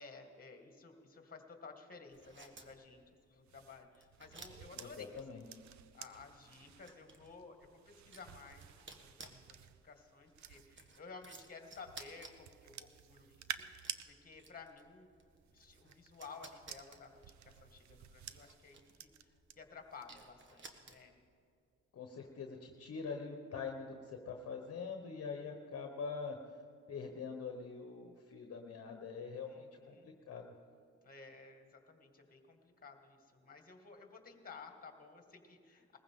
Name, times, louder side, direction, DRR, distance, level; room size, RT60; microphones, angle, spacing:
voice 1, 0.0-5.5 5.9-15.1 15.5-21.1 29.5-30.1 31.0-36.0, left 4 dB, 30° left, 4 dB, 2.1 m, -55 dB
sound 1, 2.1-21.3, right 3 dB, 40° right, 1.4 m, -59 dB
sound 2, 3.4-11.0 11.6-14.0 15.3-19.5 19.9-20.3, right 10 dB, 65° right, 0.7 m, -52 dB
voice 2, 4.7-5.4 21.9-26.6 26.9-30.5, left 5 dB, 50° left, 3 dB, 1.2 m, -44 dB
20.0 x 15.0 x 3.8 m, 2.2 s
cardioid pair, 90°, 30 cm